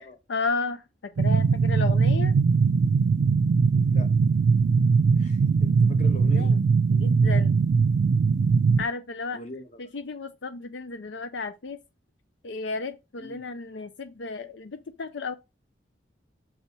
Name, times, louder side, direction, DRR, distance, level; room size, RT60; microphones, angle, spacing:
voice 1, 0.0-2.4 6.3-6.6 6.9-7.6 8.8-9.4 9.8-11.8 12.4-15.3, left 3 dB, 75° left, 0.6 m, -33 dB
sound 1, 1.2-8.8, right 5 dB, 70° right, 0.4 m, -21 dB
voice 2, 3.7-4.1 5.1-6.5 9.3-9.8 13.2-13.4, left 1 dB, 40° left, 1.1 m, -42 dB
6.2 x 4.2 x 4.7 m
head